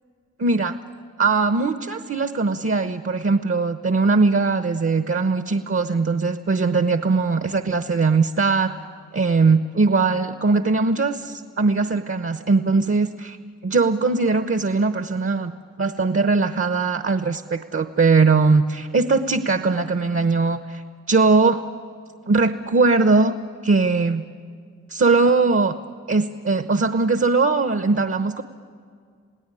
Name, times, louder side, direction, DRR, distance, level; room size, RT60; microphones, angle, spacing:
voice 1, 0.4-0.7 1.2-8.7 9.1-13.4 13.6-15.5 15.8-20.8 21.1-21.6 22.3-23.3 23.6-24.2 24.9-25.7 26.1-28.4, right 4 dB, 45° right, 9 dB, 1.0 m, -20 dB
28.0 x 17.5 x 9.9 m, 2.1 s
cardioid pair, 65°, 31 cm